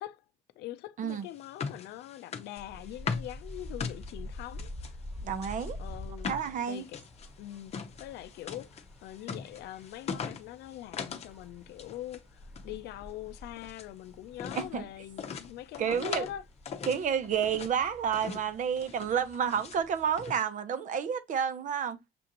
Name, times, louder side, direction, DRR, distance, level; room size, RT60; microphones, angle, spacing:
voice 1, 0.6-4.7 5.8-6.3 6.7-7.0 7.4-7.7 8.0-16.4, left 14 dB, 75° left, 0.5 m, -43 dB
sound 1, 1.1-4.9 5.3-11.4 11.6-12.2 12.5-13.9 14.3-14.7 15.2-16.3 16.6-17.7 18.1-18.5 18.8-19.8 20.2-20.4, left 6 dB, 40° left, 0.8 m, -40 dB
sound 2, 2.6-20.3, left 1 dB, 5° right, 1.3 m, -48 dB
voice 2, 5.2-5.8 6.3-6.9 14.6-14.9 15.8-16.3 16.8-22.0, right 7 dB, 50° right, 0.8 m, -30 dB
6.8 x 2.5 x 2.8 m
cardioid pair, 110°, 17 cm